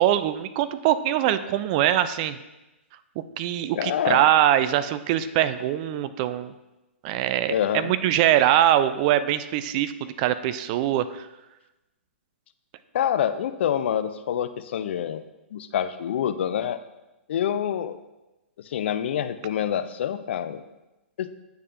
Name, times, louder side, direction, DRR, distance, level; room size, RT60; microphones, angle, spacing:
voice 1, 0.0-2.4 3.2-6.5 7.0-11.2, right 12 dB, 40° right, 13 dB, 0.3 m, -23 dB
voice 2, 3.7-4.2 7.5-7.9 12.9-15.2 15.5-16.8 17.3-18.0 18.6-20.6 21.2-21.3, left 9 dB, 60° left, 12 dB, 0.4 m, -26 dB
9.2 x 4.2 x 2.5 m, 1.0 s
hypercardioid pair, 120°, 7 cm